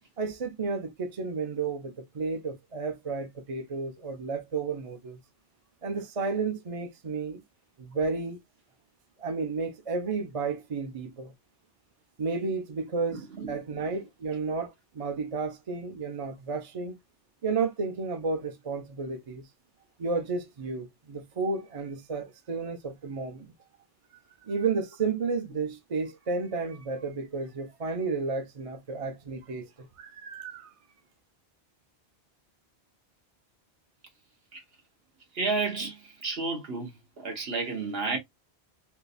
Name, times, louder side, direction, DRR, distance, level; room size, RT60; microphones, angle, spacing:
voice 1, 0.2-5.2 5.8-7.4 7.8-8.4 9.2-11.3 12.2-17.0 17.4-19.5 20.0-23.5 24.4-30.7, right 4 dB, 40° right, 0.7 m, -32 dB
voice 2, 13.1-13.6 34.5-34.6 35.3-36.9 37.2-38.2, right 3 dB, 70° right, 1.4 m, -31 dB
3.7 x 2.7 x 2.5 m
omnidirectional pair, 1.1 m